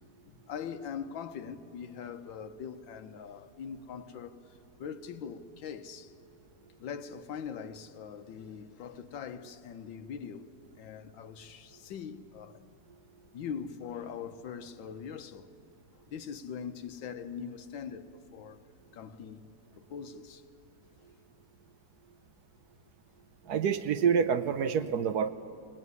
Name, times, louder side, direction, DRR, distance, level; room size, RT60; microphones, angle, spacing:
voice 1, 0.2-4.4 4.8-6.1 6.8-10.5 10.7-12.6 13.3-15.5 15.9-18.6 18.9-19.5 19.8-20.4, left 7 dB, 75° left, 1.6 m, -42 dB
voice 2, 23.5-25.3, right 7 dB, 65° right, 1.1 m, -27 dB
22.5 x 18.0 x 9.5 m
omnidirectional pair, 2.1 m